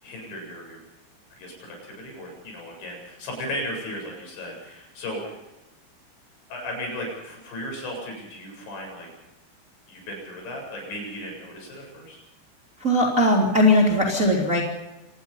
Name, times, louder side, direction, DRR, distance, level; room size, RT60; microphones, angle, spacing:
voice 1, 0.0-0.8 1.3-5.4 6.5-9.1 9.9-12.2, left 1 dB, 70° left, 1 dB, 9.8 m, -36 dB
voice 2, 12.8-14.6, left 1 dB, 20° right, -1 dB, 3.2 m, -19 dB
26.5 x 19.0 x 5.7 m, 1.0 s
omnidirectional pair, 5.4 m